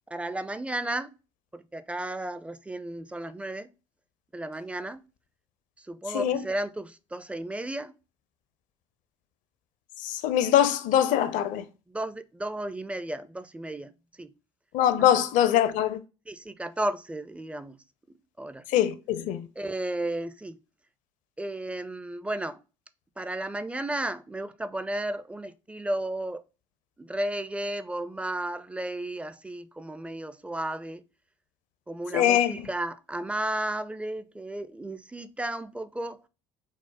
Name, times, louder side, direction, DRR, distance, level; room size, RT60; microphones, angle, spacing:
voice 1, 0.1-1.1 1.5-3.7 4.3-5.0 5.8-8.0 11.9-13.9 14.2-14.3 16.3-17.8 18.4-18.7 19.6-20.6 21.4-22.6 23.2-26.4 27.0-31.0 31.9-36.2, right 1 dB, 10° right, 0.4 m, -33 dB
voice 2, 10.0-11.6 14.7-16.0 18.7-19.5 32.1-32.5, left 11 dB, 55° left, 0.5 m, -23 dB
4.8 x 2.0 x 3.9 m
figure-of-eight pair, 60°, 16 cm